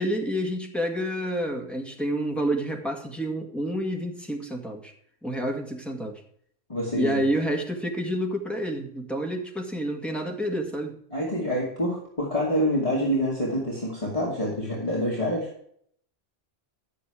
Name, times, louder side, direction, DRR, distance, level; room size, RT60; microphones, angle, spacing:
voice 1, 0.0-4.9 5.2-6.2 6.9-10.9, equal, ahead, 1 dB, 1.7 m, -29 dB
voice 2, 6.7-7.2 11.1-15.5, equal, 30° left, -5 dB, 2.5 m, -26 dB
10.5 x 6.9 x 4.9 m, 0.64 s
omnidirectional pair, 1.3 m